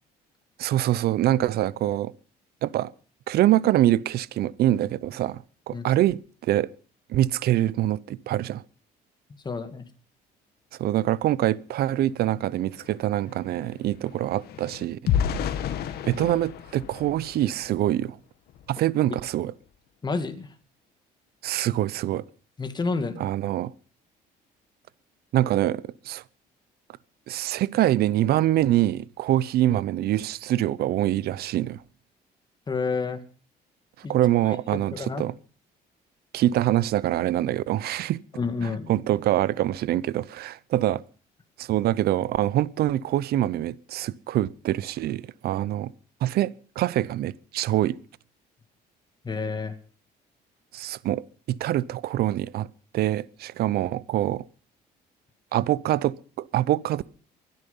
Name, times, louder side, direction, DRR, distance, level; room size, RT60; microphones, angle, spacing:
voice 1, 0.6-2.1 2.6-2.9 3.3-6.7 7.1-8.6 10.8-15.0 16.1-18.2 18.7-19.5 21.4-22.2 23.2-23.7 25.3-26.2 27.3-31.8 34.1-35.3 36.3-38.2 38.6-41.0 41.6-45.9 46.2-48.0 50.7-52.7 52.9-54.4 55.5-57.1, right 13 dB, 65° right, 0.7 m, -25 dB
voice 2, 9.4-9.9 20.0-20.5 22.6-23.3 32.7-33.2 34.0-34.1 34.5-35.2 38.3-38.9 49.2-49.7, left 4 dB, 25° left, 2.3 m, -29 dB
sound 1, 12.1-12.2 12.5-18.0 18.5-18.7 19.1-19.3, left 9 dB, 70° left, 1.9 m, -32 dB
23.5 x 10.5 x 5.5 m
cardioid pair, 110°, 17 cm